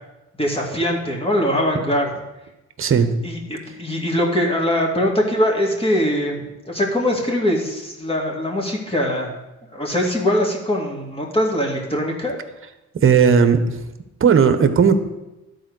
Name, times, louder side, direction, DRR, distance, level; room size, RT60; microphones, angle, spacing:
voice 1, 0.4-2.1 3.2-9.4 9.7-12.4, equal, 20° left, -1 dB, 2.5 m, -22 dB
voice 2, 2.8-3.1 12.9-13.6 14.2-14.9, right 6 dB, 45° right, 9 dB, 1.1 m, -15 dB
11.5 x 4.7 x 6.3 m, 1.0 s
cardioid pair, 90°, 30 cm